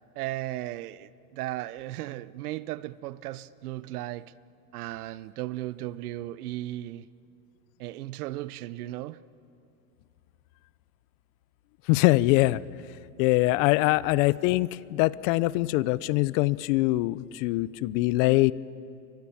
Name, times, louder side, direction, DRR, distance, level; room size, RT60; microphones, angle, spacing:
voice 1, 0.1-4.3 4.7-7.1 7.8-9.2 13.6-13.7, right 15 dB, 85° right, 0.9 m, -36 dB
voice 2, 11.9-12.6 13.2-18.5, left 19 dB, 60° left, 0.8 m, -23 dB
29.5 x 24.5 x 7.2 m
supercardioid pair, 115°, 44 cm